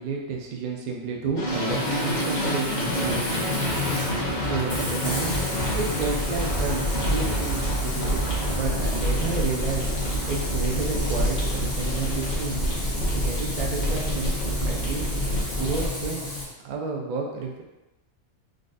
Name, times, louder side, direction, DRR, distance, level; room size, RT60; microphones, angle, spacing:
voice 1, 0.0-3.5 4.5-5.3 5.7-8.2 8.5-9.8 10.3-12.6 13.2-14.3 14.7-15.1 15.5-16.2 16.6-17.6, right 4 dB, 80° right, -1 dB, 0.4 m, -31 dB
sound 1, 1.4-15.9, equal, 40° left, 0.9 m, -27 dB
Frying (food), 1.5-16.4, left 3 dB, 60° left, 1.4 m, -34 dB
3.8 x 2.3 x 2.5 m, 1.0 s
omnidirectional pair, 1.4 m